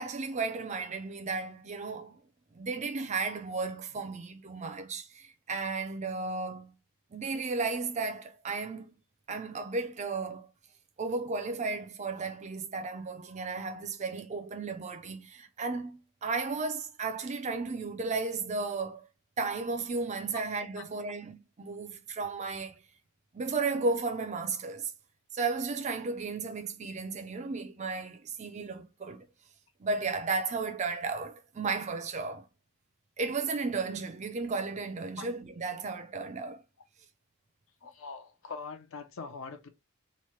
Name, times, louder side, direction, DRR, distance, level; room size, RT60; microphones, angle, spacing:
voice 1, 0.0-2.2 2.5-6.7 7.1-8.9 9.3-10.5 11.0-19.1 19.4-22.8 23.3-24.9 25.3-29.3 29.8-32.4 33.2-36.6, right 4 dB, 30° right, 0.4 m, -34 dB
voice 2, 37.8-39.7, left 4 dB, 60° left, 0.6 m, -42 dB
3.1 x 2.1 x 4.2 m
head